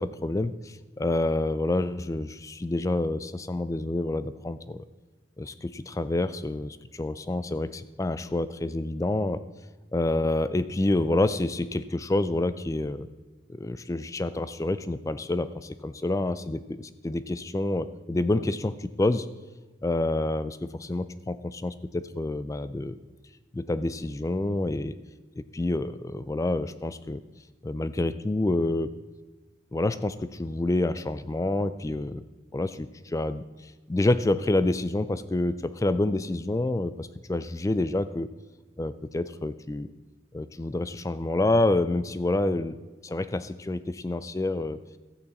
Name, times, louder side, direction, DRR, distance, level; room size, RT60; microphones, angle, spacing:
voice 1, 0.0-4.8 5.4-9.4 9.9-13.1 13.6-19.3 19.8-23.0 23.5-25.0 25.4-27.2 27.6-28.9 29.7-32.2 32.5-33.4 33.9-38.3 38.8-39.9 40.3-42.8 43.0-44.8, left 2 dB, 15° left, 14 dB, 0.3 m, -28 dB
13.5 x 8.6 x 4.2 m, 1.2 s
head